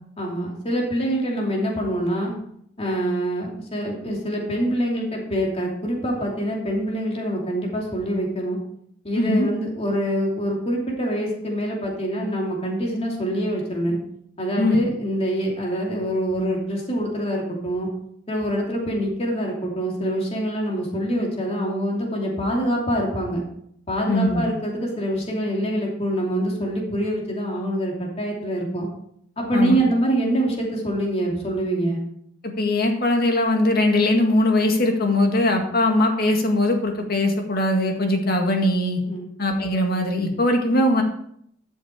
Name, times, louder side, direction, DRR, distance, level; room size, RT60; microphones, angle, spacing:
voice 1, 0.2-2.3 2.8-8.6 9.0-14.0 14.4-17.9 18.3-23.4 23.9-28.9 29.4-32.0 39.0-39.2, right 1 dB, 35° left, -1 dB, 2.8 m, -25 dB
voice 2, 9.2-9.5 14.6-14.8 24.1-24.5 29.5-29.8 32.4-39.0 39.4-41.0, left 1 dB, 55° left, 3 dB, 1.8 m, -20 dB
11.5 x 6.6 x 4.8 m, 0.70 s
head